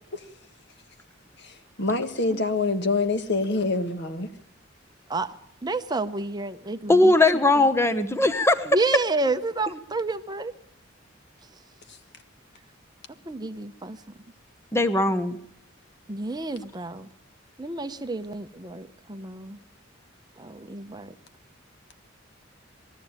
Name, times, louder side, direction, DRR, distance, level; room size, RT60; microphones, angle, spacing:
voice 1, 1.4-4.3, left 3 dB, 60° left, 1.7 m, -26 dB
voice 2, 5.6-7.7 8.6-10.5 13.3-14.0 16.1-17.1 17.6-19.6 20.4-21.1, right 2 dB, 20° right, 0.8 m, -30 dB
voice 3, 6.9-8.7 14.7-15.4, left 2 dB, 15° left, 1.1 m, -19 dB
21.0 x 14.0 x 9.0 m
head